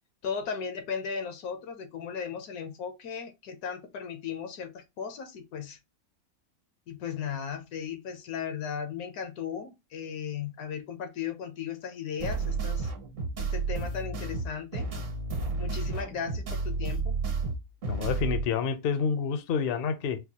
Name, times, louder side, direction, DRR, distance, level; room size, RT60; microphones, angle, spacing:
voice 1, 0.2-5.8 6.9-12.9 13.4-14.9 15.6-17.1, left 7 dB, 85° left, 1.2 m, -36 dB
sound 1, 12.2-18.4, right 4 dB, 65° right, 1.4 m, -31 dB
voice 2, 17.9-20.2, left 6 dB, 60° left, 0.6 m, -28 dB
4.4 x 2.3 x 2.7 m
omnidirectional pair, 1.5 m